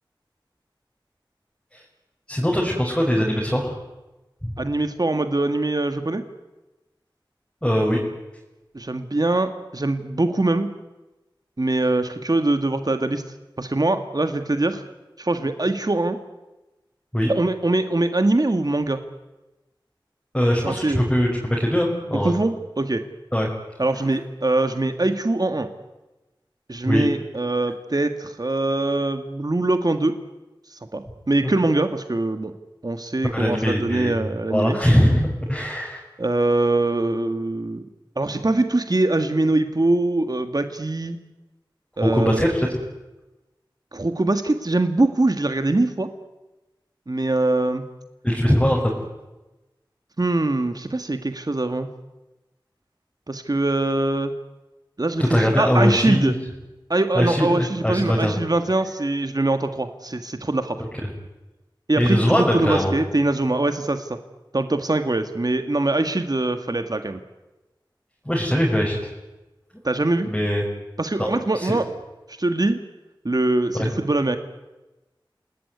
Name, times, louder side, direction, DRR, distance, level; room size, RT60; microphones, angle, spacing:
voice 1, 2.3-3.8 4.4-4.5 7.6-8.0 17.1-17.3 20.3-22.3 23.3-23.5 26.9-27.1 31.4-31.5 33.3-34.2 34.5-36.0 42.0-42.7 48.2-48.8 55.2-56.3 57.1-58.3 60.8-61.1 62.0-62.9 68.3-69.1 70.2-70.6 71.2-71.3 71.5-71.7 73.7-73.9, equal, 10° left, -3 dB, 6.1 m, -21 dB
voice 2, 4.6-6.2 8.7-10.7 11.6-13.2 13.6-14.8 15.2-16.2 17.3-19.0 20.6-21.0 22.1-23.0 23.8-25.7 26.7-30.2 30.7-32.5 32.8-34.8 36.2-37.8 38.2-41.2 42.0-42.5 43.9-46.1 47.1-47.8 50.2-51.9 53.3-54.3 55.0-56.3 56.9-60.8 61.9-64.2 64.5-67.2 69.8-70.3 71.0-71.9 72.3-72.8 73.2-74.4, right 2 dB, 50° right, 8 dB, 1.8 m, -23 dB
29.0 x 19.0 x 9.6 m, 1.1 s
wide cardioid pair, 45°, 9 cm